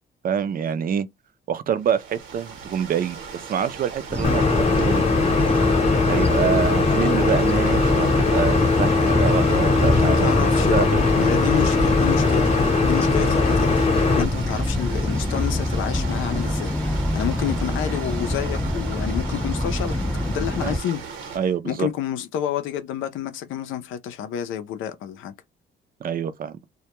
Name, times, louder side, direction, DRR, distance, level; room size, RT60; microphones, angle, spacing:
voice 1, 0.2-1.1 1.5-5.0 6.1-11.0 11.5-11.7 13.0-13.1 20.6-20.8 21.4-21.9 26.0-26.6, right 8 dB, 45° right, 0.4 m, -26 dB
sound 1, 1.8-21.4, right 5 dB, 75° right, 0.9 m, -37 dB
sound 2, 4.1-20.8, left 1 dB, 5° left, 0.5 m, -25 dB
sound 3, 4.2-14.2, left 4 dB, 30° left, 0.8 m, -20 dB
voice 2, 9.8-12.5 12.8-20.0 20.3-21.0 21.6-25.3, left 10 dB, 85° left, 0.5 m, -29 dB
2.2 x 2.2 x 2.8 m
cardioid pair, 90°, 20 cm